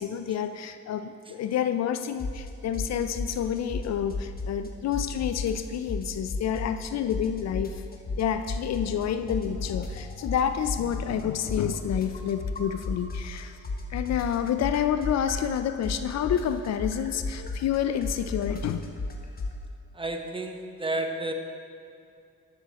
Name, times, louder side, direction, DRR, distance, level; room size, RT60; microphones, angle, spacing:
voice 1, 0.0-7.8 8.2-13.6 13.9-18.9, left 9 dB, 60° left, 10 dB, 0.5 m, -29 dB
sound 1, 2.2-2.5 2.7-4.7 4.9-6.9 7.1-9.0 9.3-13.4 13.6-19.6, left 3 dB, 30° left, 1.1 m, -33 dB
voice 2, 19.9-21.3, right 2 dB, 15° right, 4 dB, 0.9 m, -31 dB
13.0 x 6.2 x 4.1 m, 2.5 s
cardioid pair, 90°, 30 cm